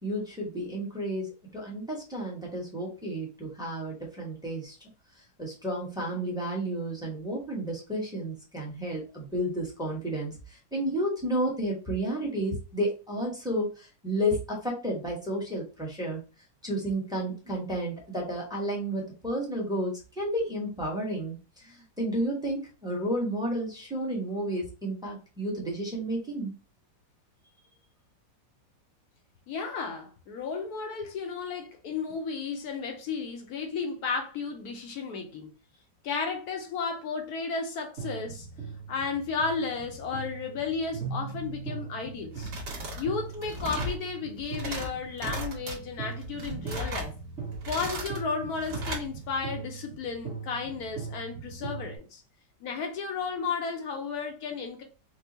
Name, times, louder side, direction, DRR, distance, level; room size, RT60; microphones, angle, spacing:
voice 1, 0.0-4.8 5.4-16.2 16.6-26.5, right 1 dB, 5° right, 0.6 m, -32 dB
voice 2, 29.5-35.5 36.0-38.5 38.9-42.5 42.9-47.1 47.6-52.2 52.6-54.8, left 5 dB, 70° left, 1.0 m, -33 dB
sound 1, 38.0-52.0, right 5 dB, 45° right, 1.2 m, -40 dB
sound 2, 42.3-43.0 43.3-44.0 44.4-44.9 45.2-45.8 46.2-47.1 47.5-48.2 48.6-49.0, equal, 75° right, 1.7 m, -36 dB
4.4 x 2.0 x 2.7 m
omnidirectional pair, 1.9 m